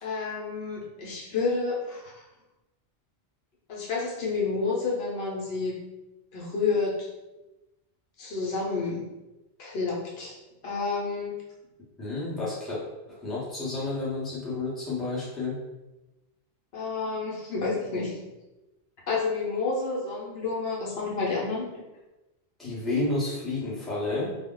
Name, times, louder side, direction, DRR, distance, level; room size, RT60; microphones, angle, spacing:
voice 1, 0.0-2.1 3.7-5.7 6.3-7.1 8.2-9.1 9.6-10.4 10.6-11.3 16.7-18.2 19.1-21.8, left 4 dB, 70° left, -4 dB, 0.9 m, -29 dB
voice 2, 12.0-12.8 13.1-15.6 22.6-24.4, left 2 dB, ahead, -8 dB, 0.7 m, -30 dB
2.3 x 2.0 x 3.7 m, 1.0 s
omnidirectional pair, 1.1 m